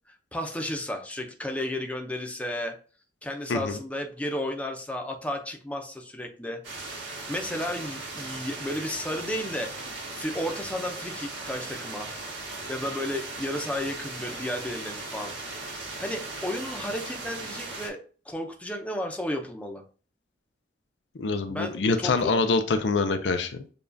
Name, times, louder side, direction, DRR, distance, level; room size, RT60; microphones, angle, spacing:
voice 1, 0.1-2.8 3.2-6.6 7.3-12.1 12.7-18.0 18.3-19.8 21.5-22.4, left 1 dB, 10° left, 3 dB, 0.6 m, -33 dB
sound 1, 6.6-17.9, right 3 dB, 85° right, 1.5 m, -38 dB
voice 2, 21.1-23.6, left 3 dB, 75° left, 8 dB, 0.5 m, -25 dB
6.8 x 2.4 x 2.6 m, 0.39 s
head